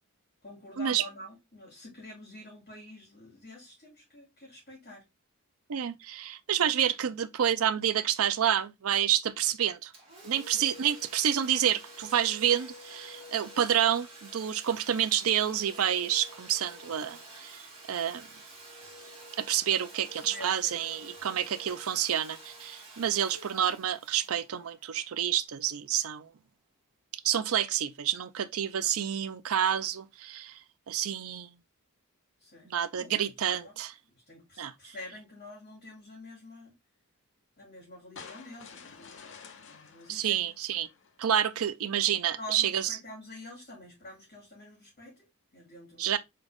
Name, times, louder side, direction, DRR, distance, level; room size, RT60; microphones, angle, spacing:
voice 1, 0.4-5.0 10.4-10.7 20.1-20.7 21.3-21.5 32.4-32.7 33.0-33.3 33.6-33.7 34.1-36.7 37.6-39.4 39.6-40.5 42.3-45.3 45.5-46.2, left 1 dB, 40° left, 2.6 m, -47 dB
voice 2, 5.7-9.9 10.2-17.6 17.9-18.3 19.4-26.3 27.2-30.6 30.9-31.5 32.7-33.9 34.6-34.7 40.1-40.9 41.2-43.0 46.0-46.2, right 10 dB, 65° right, 0.5 m, -29 dB
Domestic sounds home sounds, 9.9-25.4, right 1 dB, 25° right, 2.0 m, -49 dB
sound 1, 38.2-41.4, left 5 dB, 55° left, 0.8 m, -50 dB
4.1 x 3.8 x 3.4 m
head